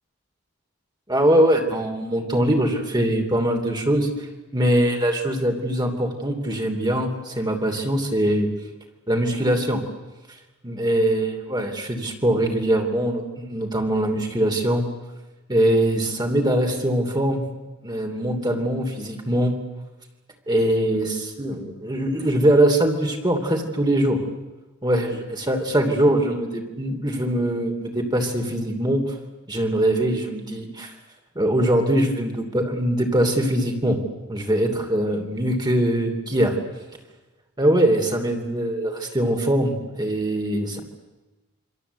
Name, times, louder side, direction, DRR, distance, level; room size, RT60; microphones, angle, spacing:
voice 1, 1.1-4.1 4.5-8.5 9.1-9.8 10.6-14.8 15.5-17.4 17.8-19.5 20.5-24.2 24.8-29.2 29.5-30.9 31.3-34.0 34.3-36.5 37.6-40.8, right 1 dB, 20° right, 3 dB, 2.9 m, -22 dB
27.5 x 25.0 x 8.2 m, 1.1 s
head